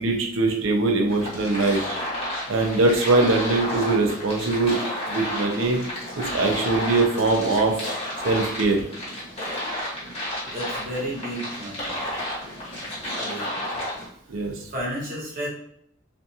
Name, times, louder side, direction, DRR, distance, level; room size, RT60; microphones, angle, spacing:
voice 1, 0.0-1.8 2.5-4.8 5.1-5.8 6.1-7.9 8.2-8.9 14.3-14.5, right 3 dB, 70° right, 2 dB, 0.5 m, -22 dB
sound 1, 1.1-14.1, left 1 dB, 30° left, 1.1 m, -31 dB
voice 2, 10.5-11.8 13.1-13.5 14.7-15.5, equal, 45° right, -5 dB, 1.0 m, -31 dB
2.5 x 2.3 x 2.7 m, 0.68 s
head